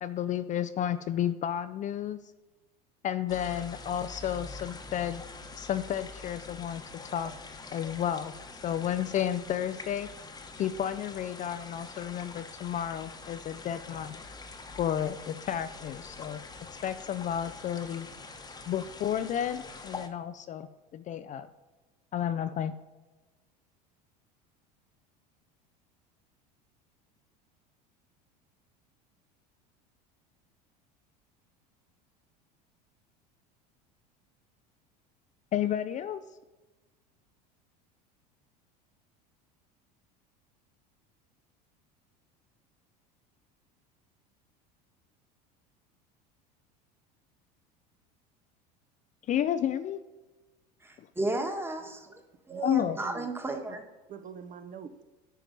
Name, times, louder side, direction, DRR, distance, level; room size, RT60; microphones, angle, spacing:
voice 1, 0.0-2.2 3.0-5.2 5.6-7.3 7.7-10.1 10.6-14.2 14.8-16.4 16.8-18.1 18.7-21.5 22.1-22.7 35.5-36.2 49.3-50.0 51.0-51.1 52.6-53.0, left 10 dB, 35° left, 0.4 m, -32 dB
sound 1, 3.3-20.1, left 3 dB, 20° left, 1.0 m, -45 dB
voice 2, 50.8-52.1 52.5-53.8, right 2 dB, 10° right, 1.4 m, -33 dB
voice 3, 52.5-53.3 53.7-53.8 54.1-55.0, right 7 dB, 40° right, 0.8 m, -44 dB
9.2 x 4.6 x 5.3 m
hypercardioid pair, 90°, 21 cm